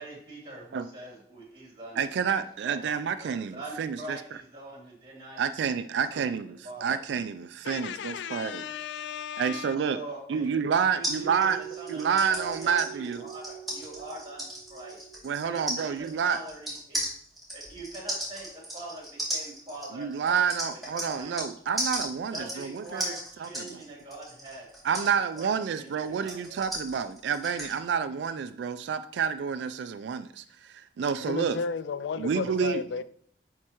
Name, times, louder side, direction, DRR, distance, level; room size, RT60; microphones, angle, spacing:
voice 1, 0.0-2.9 3.2-5.4 6.1-7.0 9.9-10.5 10.9-14.4 14.7-15.1 15.4-17.0 17.5-20.4 20.7-20.8 21.1-21.4 22.3-24.6 24.9-25.0 25.3-26.6, right 2 dB, 30° right, 3.1 m, -43 dB
voice 2, 2.0-4.2 5.4-8.7 9.4-10.0 10.3-11.6 11.9-13.2 15.2-16.4 19.9-23.1 23.4-23.8 24.8-31.6 32.2-33.0, right 7 dB, 80° right, 0.3 m, -29 dB
voice 3, 7.6-9.7 31.2-33.0, left 6 dB, 90° left, 0.4 m, -34 dB
sound 1, 11.0-21.5 21.8-27.7, equal, ahead, 2.5 m, -36 dB
sound 2, 11.2-15.3, right 10 dB, 35° left, 1.0 m, -43 dB
10.5 x 4.5 x 3.0 m
head